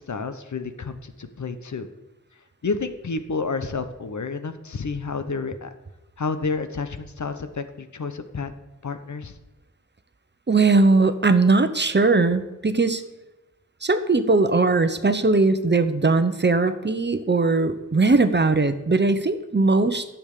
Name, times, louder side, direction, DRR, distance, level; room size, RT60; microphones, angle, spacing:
voice 1, 0.0-1.9 2.6-5.7 6.2-8.5 8.8-9.3, left 4 dB, 60° left, 9 dB, 1.0 m, -30 dB
voice 2, 10.5-13.0 13.8-20.1, right 3 dB, 35° right, 10 dB, 0.9 m, -19 dB
10.5 x 7.3 x 6.7 m, 1.0 s
wide cardioid pair, 60°, 32 cm